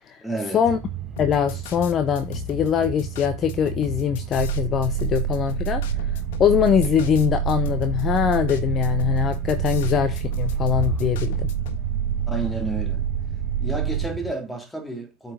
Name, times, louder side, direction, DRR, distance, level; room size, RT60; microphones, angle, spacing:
voice 1, 0.2-0.7 12.3-13.1 13.6-15.3, right 2 dB, 5° left, 2.5 m, -31 dB
sound 1, 0.6-14.3, right 8 dB, 30° right, 0.8 m, -34 dB
sound 2, 1.2-11.8, left 11 dB, 65° left, 1.3 m, -37 dB
voice 2, 1.2-11.5, left 9 dB, 35° left, 0.8 m, -22 dB
sound 3, 4.4-14.1, right 9 dB, 80° right, 0.4 m, -27 dB
8.7 x 5.3 x 3.8 m
hypercardioid pair, 95°, 0 cm